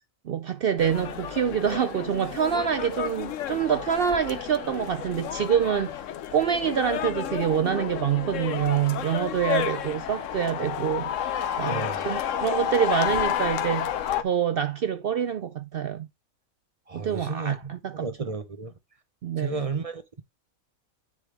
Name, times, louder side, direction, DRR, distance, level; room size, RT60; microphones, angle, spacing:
voice 1, 0.2-6.0 6.3-11.3 11.6-13.9 14.2-16.1 16.9-18.1 19.2-19.7, right 8 dB, 70° right, 0.5 m, -26 dB
sound 1, 0.8-14.2, left 10 dB, 65° left, 1.0 m, -31 dB
voice 2, 11.7-12.2 16.9-18.7 19.4-20.2, right 5 dB, 30° right, 0.8 m, -32 dB
9.6 x 3.8 x 3.3 m
omnidirectional pair, 1.5 m